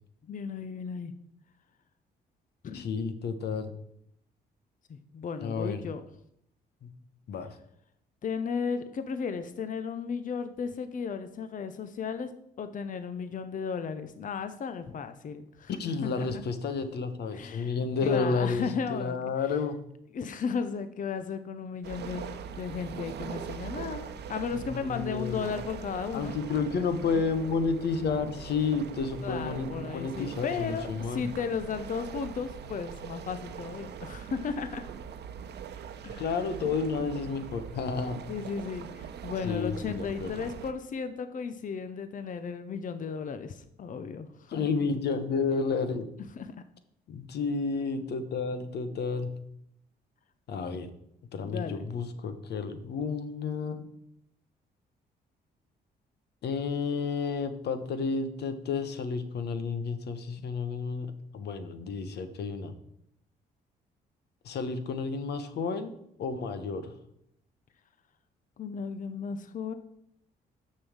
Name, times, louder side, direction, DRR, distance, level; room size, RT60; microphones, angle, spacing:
voice 1, 0.3-1.1 2.6-2.8 4.9-6.0 8.2-15.7 16.0-16.3 17.3-19.2 20.1-26.3 27.1-27.3 29.2-34.8 36.0-36.3 38.3-44.6 46.4-46.5 50.7-50.8 51.4-51.9 68.6-69.7, left 6 dB, 50° left, 10 dB, 0.7 m, -35 dB
voice 2, 2.7-3.7 5.4-5.8 6.8-6.9 7.3-7.6 15.7-19.8 24.5-25.5 26.1-31.3 36.2-38.2 39.4-40.4 44.5-46.1 47.1-49.3 50.5-50.9 51.3-53.9 56.4-61.1 61.3-62.7 64.4-65.9 66.2-66.9, left 4 dB, 70° left, 10 dB, 1.1 m, -31 dB
sound 1, 21.8-40.7, right 7 dB, 70° right, 0.8 m, -42 dB
6.8 x 5.5 x 7.2 m, 0.74 s
cardioid pair, 75°, 18 cm